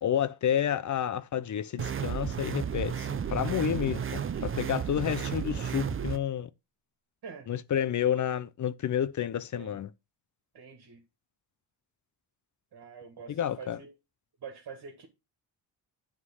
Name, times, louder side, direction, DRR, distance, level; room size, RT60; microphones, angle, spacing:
voice 1, 0.0-6.5 7.5-9.9 13.3-13.8, left 9 dB, 45° left, 0.6 m, -30 dB
sound 1, 1.8-6.2, right 8 dB, 30° right, 0.6 m, -33 dB
voice 2, 10.5-11.0 12.7-13.9 14.4-15.1, right 6 dB, 55° right, 2.1 m, -46 dB
9.6 x 3.8 x 5.5 m
cardioid pair, 110°, 42 cm